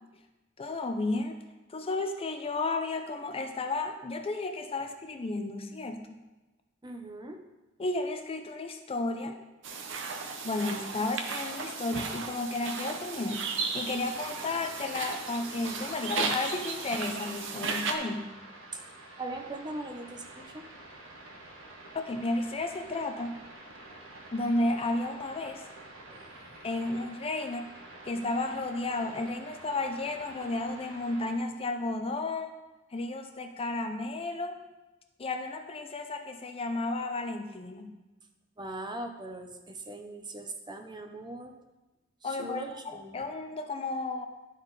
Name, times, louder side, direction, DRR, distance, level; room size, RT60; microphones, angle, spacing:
voice 1, 0.6-1.4 1.7-6.2 7.8-9.4 10.4-18.3 21.9-23.4 24.3-25.6 26.6-27.7 28.0-32.5 32.9-34.6 35.2-38.0 42.2-44.3, left 2 dB, 30° left, 6 dB, 0.4 m, -33 dB
voice 2, 6.8-7.4 18.7-18.9 19.2-20.6 26.1-26.6 38.6-41.5 42.2-43.2, right 2 dB, 20° right, 5 dB, 0.6 m, -40 dB
sound 1, 9.6-18.0, right 4 dB, 65° right, 0.7 m, -35 dB
sound 2, 13.7-31.4, right 2 dB, 80° right, 1.2 m, -49 dB
11.5 x 4.1 x 3.9 m, 1.1 s
head